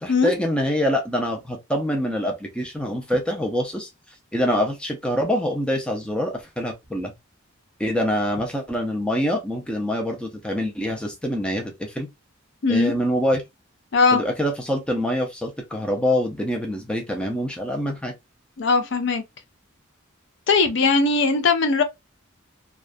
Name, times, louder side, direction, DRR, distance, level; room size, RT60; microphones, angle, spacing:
voice 1, 0.0-3.9 4.3-7.1 7.8-12.1 12.7-13.4 14.1-18.1, equal, 5° left, 0.4 m, -25 dB
voice 2, 12.6-12.9 13.9-14.2 18.6-19.2 20.5-21.8, left 4 dB, 60° left, 0.5 m, -19 dB
2.3 x 2.2 x 2.4 m
head